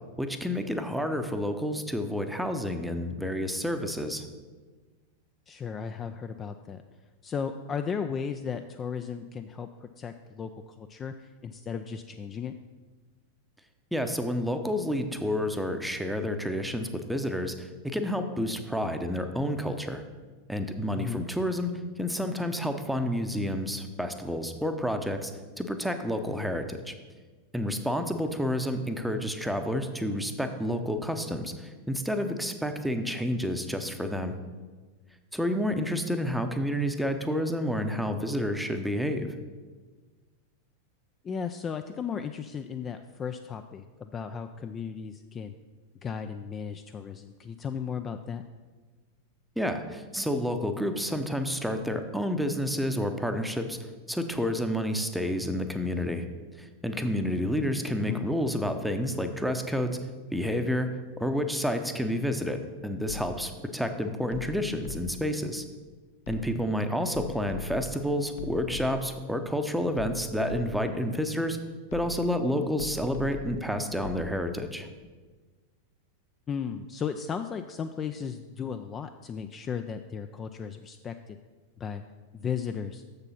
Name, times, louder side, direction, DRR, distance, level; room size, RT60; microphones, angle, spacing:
voice 1, 0.2-4.2 13.9-20.0 20.5-21.7 22.0-25.3 25.6-26.9 27.5-34.3 35.3-39.3 49.6-53.8 54.1-56.3 56.6-60.0 60.3-60.9 61.2-65.6 66.3-71.6 71.9-74.9, equal, ahead, 6 dB, 0.7 m, -29 dB
voice 2, 5.5-6.8 7.2-12.5 21.0-21.2 41.2-45.5 46.0-48.4 58.0-58.2 76.5-81.4 81.8-82.0 82.3-83.0, left 6 dB, 25° left, 8 dB, 0.3 m, -35 dB
sound 1, 63.1-63.6 64.3-65.4 66.3-66.8 67.1-69.3 70.0-71.0 71.9-72.4 72.8-74.3, left 5 dB, 55° left, 0.8 m, -41 dB
7.0 x 6.7 x 5.6 m, 1.4 s
figure-of-eight pair, 90°, 0 cm